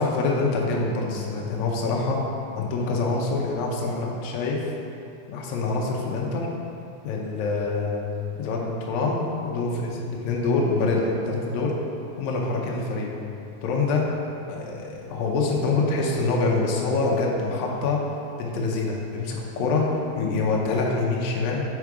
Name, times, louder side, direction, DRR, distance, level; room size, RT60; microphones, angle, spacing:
voice 1, 0.0-2.2 2.6-4.6 5.3-6.5 7.0-8.0 8.4-11.7 12.2-13.1 13.6-14.1 14.5-18.0 18.4-19.9 20.1-21.6, left 3 dB, 90° left, -2 dB, 1.6 m, -25 dB
4.7 x 4.6 x 4.7 m, 2.7 s
omnidirectional pair, 4.2 m